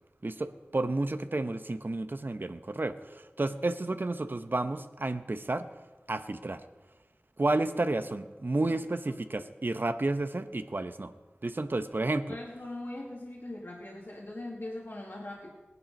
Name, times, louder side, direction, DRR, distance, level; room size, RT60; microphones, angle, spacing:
voice 1, 0.2-3.0 3.4-5.7 6.1-6.6 7.4-11.1 11.4-12.3, right 2 dB, 55° right, 10 dB, 0.8 m, -31 dB
voice 2, 12.3-15.5, left 1 dB, 60° left, -3 dB, 2.1 m, -41 dB
17.5 x 11.0 x 5.3 m, 1.2 s
wide cardioid pair, 45°, 4 cm